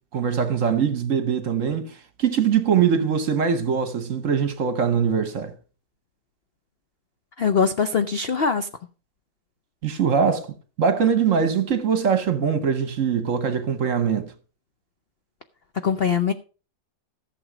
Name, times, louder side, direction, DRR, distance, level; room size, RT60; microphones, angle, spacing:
voice 1, 0.1-5.5 9.8-14.3, right 7 dB, 50° right, 1.2 m, -22 dB
voice 2, 7.4-8.7 15.8-16.3, left 6 dB, 55° left, 0.6 m, -22 dB
14.5 x 7.1 x 5.0 m
omnidirectional pair, 1.9 m